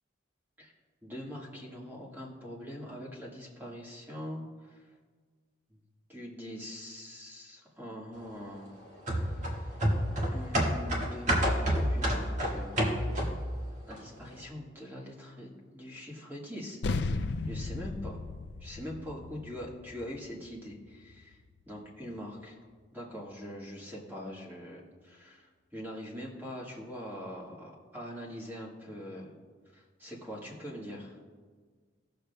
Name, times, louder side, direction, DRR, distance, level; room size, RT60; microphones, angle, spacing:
voice 1, 1.0-4.8 6.1-8.7 9.3-9.4 10.3-13.1 13.9-18.2 18.6-21.4 21.7-22.6 22.9-29.3 29.7-31.2, equal, 10° right, -4 dB, 1.6 m, -43 dB
sound 1, 9.1-13.5 13.9-14.0, equal, 40° right, 1.7 m, -28 dB
sound 2, 16.8-21.6, left 3 dB, 65° left, 0.4 m, -36 dB
17.5 x 6.8 x 2.2 m, 1.5 s
head